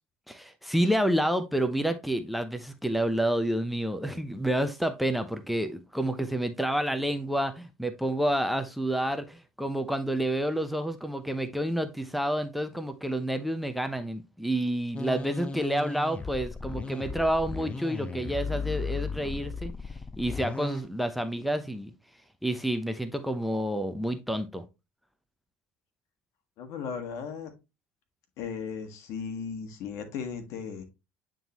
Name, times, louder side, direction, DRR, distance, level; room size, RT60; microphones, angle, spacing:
voice 1, 0.3-19.7 20.2-21.9 22.4-24.6, right 1 dB, ahead, 0.8 m, -29 dB
sound 1, 14.9-20.8, left 4 dB, 20° left, 1.3 m, -36 dB
voice 2, 26.6-27.5 28.4-30.8, left 6 dB, 60° left, 1.5 m, -36 dB
9.0 x 3.8 x 3.0 m
hypercardioid pair, 70°, 6 cm